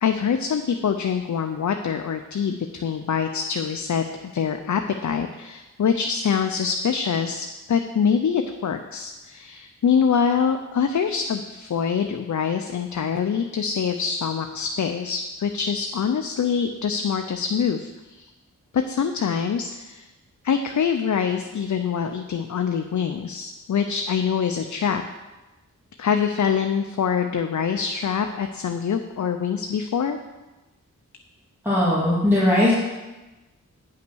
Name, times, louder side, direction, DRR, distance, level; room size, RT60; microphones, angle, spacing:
voice 1, 0.0-18.3 18.7-20.1 20.4-25.0 26.0-30.2, left 7 dB, 65° left, 6 dB, 0.6 m, -24 dB
voice 2, 31.6-32.7, left 1 dB, 5° right, -10 dB, 2.8 m, -19 dB
9.3 x 5.7 x 6.2 m, 1.1 s
wide cardioid pair, 75°, 32 cm